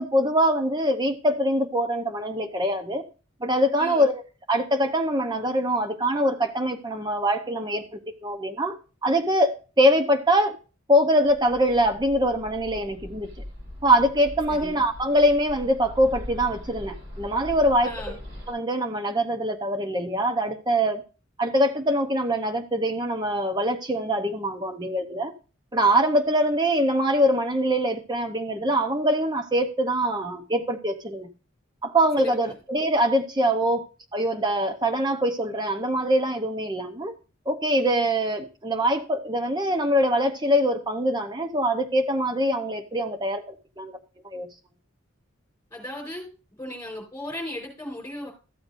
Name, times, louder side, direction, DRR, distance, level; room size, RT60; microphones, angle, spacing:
voice 1, 0.0-3.0 3.4-4.2 4.5-8.8 9.0-10.6 10.9-13.3 13.8-18.2 18.5-21.0 21.4-25.3 25.7-31.3 31.8-37.1 37.5-43.9 44.2-44.5, equal, 20° right, 0.8 m, -23 dB
voice 2, 3.8-4.1 14.5-14.8 17.8-18.2 32.2-32.3 45.7-46.2 46.5-48.3, left 1 dB, 15° left, 4.2 m, -36 dB
Bird, 11.2-18.5, left 1 dB, 55° right, 4.8 m, -41 dB
14.0 x 7.8 x 2.6 m
head